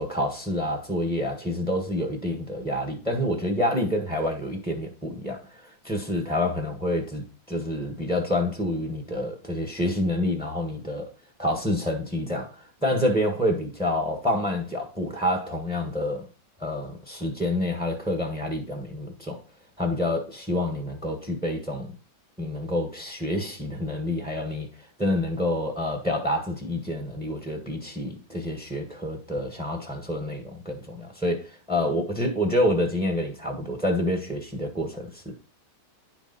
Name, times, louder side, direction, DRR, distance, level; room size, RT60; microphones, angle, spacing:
voice 1, 0.0-11.1 11.4-16.2 16.6-19.4 19.8-22.0 22.4-24.7 25.0-35.3, left 1 dB, 5° right, 1.3 m, -28 dB
10.0 x 6.2 x 4.1 m
omnidirectional pair, 2.1 m